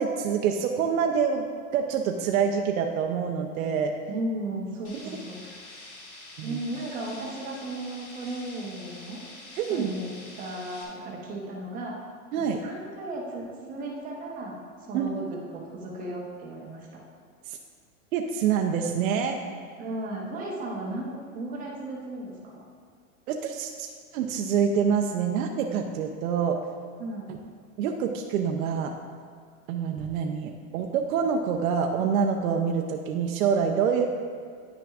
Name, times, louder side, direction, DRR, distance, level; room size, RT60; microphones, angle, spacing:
voice 1, 0.0-1.5 1.7-3.9 5.0-5.2 6.4-6.6 9.6-9.9 12.3-12.6 14.9-15.1 17.5-17.6 18.1-19.4 23.3-26.6 27.8-28.9 29.7-34.1, right 7 dB, 80° right, 3 dB, 0.7 m, -26 dB
voice 2, 4.1-5.7 6.4-9.2 9.7-12.0 12.4-14.6 14.9-17.0 19.8-22.6 27.0-27.3, right 1 dB, 20° right, -2 dB, 0.8 m, -35 dB
sound 1, 4.8-10.8, left 2 dB, 30° left, 1.2 m, -46 dB
9.9 x 6.0 x 2.4 m, 2.2 s
supercardioid pair, 165°, 41 cm